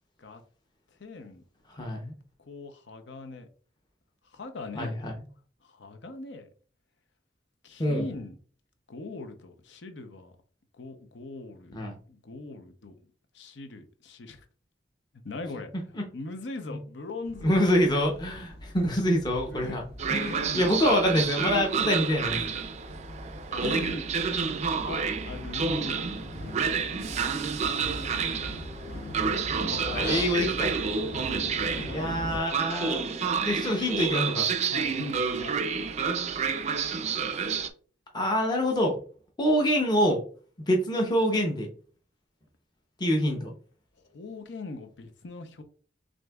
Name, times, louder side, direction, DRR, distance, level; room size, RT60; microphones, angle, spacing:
voice 1, 1.0-1.4 1.8-1.9 2.4-3.5 4.2-5.0 5.6-6.5 7.6-8.4 8.9-10.3 10.7-11.8 12.1-12.9 13.3-14.4 15.2-17.6 19.5-20.7 22.4-22.5 23.5-24.0 24.8-26.1 27.1-27.3 27.6-27.9 29.2-30.3 31.8-32.3 33.2-33.3 33.7-33.8 34.7-35.6 44.0-45.6, left 2 dB, 75° left, 0.7 m, -40 dB
voice 2, 1.8-2.1 4.7-5.1 7.8-8.1 11.7-12.0 16.0-16.1 17.4-19.8 20.1-22.4 23.6-23.9 24.3-24.4 29.8-30.7 31.9-33.0 33.4-34.5 38.1-39.0 39.4-40.2 40.7-41.7 43.0-43.5, equal, 25° left, 0.7 m, -26 dB
sound 1, 17.2-32.4, left 1 dB, 55° left, 1.1 m, -41 dB
Train, 20.0-37.7, right 5 dB, 35° right, 0.4 m, -29 dB
6.3 x 2.6 x 2.3 m
head